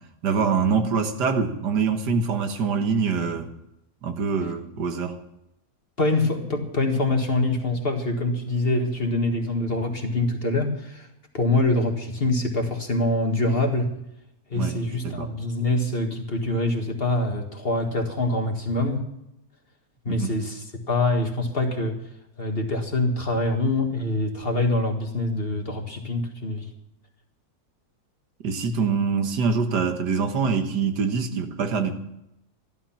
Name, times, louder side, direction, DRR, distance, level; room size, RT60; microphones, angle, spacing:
voice 1, 0.2-3.5 4.0-5.2 14.5-14.8 15.0-15.3 20.1-20.4 28.4-31.9, right 5 dB, 85° right, 6 dB, 1.9 m, -24 dB
voice 2, 6.0-11.1 11.3-13.9 14.5-19.0 20.1-22.0 22.4-26.7, left 2 dB, 35° left, 3 dB, 1.9 m, -25 dB
14.5 x 12.0 x 5.8 m, 0.84 s
omnidirectional pair, 1.8 m